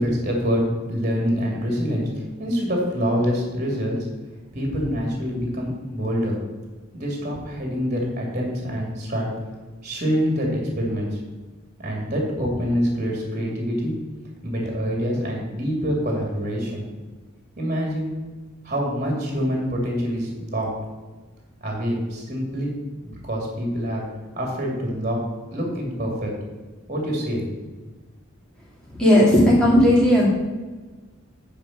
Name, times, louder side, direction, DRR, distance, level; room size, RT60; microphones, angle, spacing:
voice 1, 0.0-4.1 4.5-6.4 6.9-9.3 9.8-11.2 11.8-13.9 14.4-16.8 17.6-18.1 18.6-20.7 21.6-22.7 23.0-24.1 24.3-25.3 25.5-26.3 26.9-27.4, equal, 35° right, 0 dB, 2.5 m, -25 dB
voice 2, 29.0-30.3, equal, 5° left, -5 dB, 2.8 m, -15 dB
8.9 x 5.1 x 7.2 m, 1.3 s
head